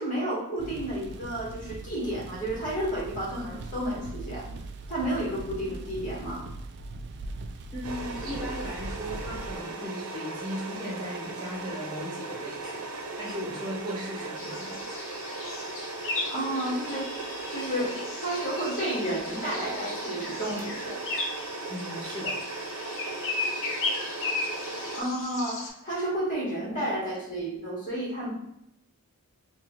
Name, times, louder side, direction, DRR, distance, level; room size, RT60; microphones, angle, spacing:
voice 1, 0.0-4.5 4.9-6.5 16.3-17.1 17.5-21.0 24.9-28.3, right 1 dB, 35° left, -5 dB, 1.5 m, -31 dB
sound 1, 0.6-9.6, right 2 dB, 50° right, 0.3 m, -40 dB
voice 2, 7.7-12.9 13.2-15.0 21.7-22.4, equal, 20° right, -5 dB, 1.4 m, -37 dB
sound 2, 7.8-25.0, right 3 dB, 85° right, 0.7 m, -37 dB
sound 3, 14.4-25.7, left 3 dB, 60° left, 0.8 m, -36 dB
3.0 x 2.5 x 3.7 m, 0.80 s
head